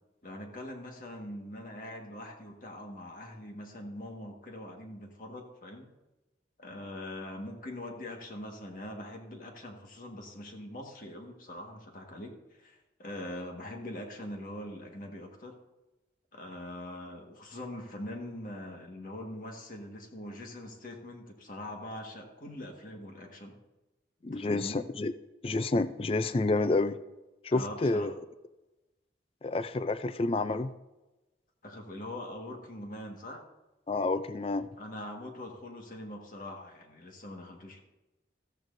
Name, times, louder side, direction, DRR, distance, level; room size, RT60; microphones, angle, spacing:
voice 1, 0.2-5.9 6.6-15.5 16.3-23.5 24.3-24.8 27.5-28.1 31.6-33.4 34.8-37.8, left 1 dB, 45° left, 1 dB, 1.7 m, -42 dB
voice 2, 24.2-25.1 25.4-27.0 27.4-28.1 29.4-30.7 33.9-34.7, left 2 dB, 30° left, 13 dB, 0.4 m, -29 dB
14.5 x 14.0 x 2.7 m, 1.0 s
head